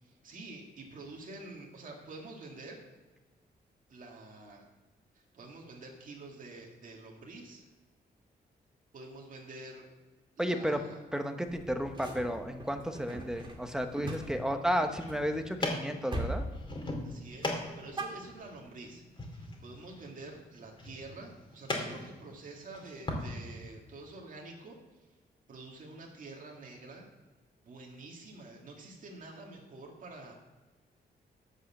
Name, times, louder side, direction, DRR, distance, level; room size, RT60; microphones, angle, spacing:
voice 1, 0.0-2.8 3.9-4.7 5.1-7.7 8.9-9.9 10.4-11.0 17.0-19.0 19.3-25.1 25.5-27.1 27.6-30.3, right 2 dB, 50° right, 0 dB, 2.1 m, -48 dB
voice 2, 10.4-10.8 11.1-16.4, equal, 5° right, 6 dB, 1.0 m, -32 dB
sound 1, 11.4-15.7 16.1-16.5 16.7-17.2 17.5-18.8, right 2 dB, 30° right, 2.1 m, -41 dB
sound 2, 14.8-23.3, left 2 dB, 30° left, 2.6 m, -40 dB
11.0 x 5.7 x 7.3 m, 1.3 s
cardioid pair, 100°, 17 cm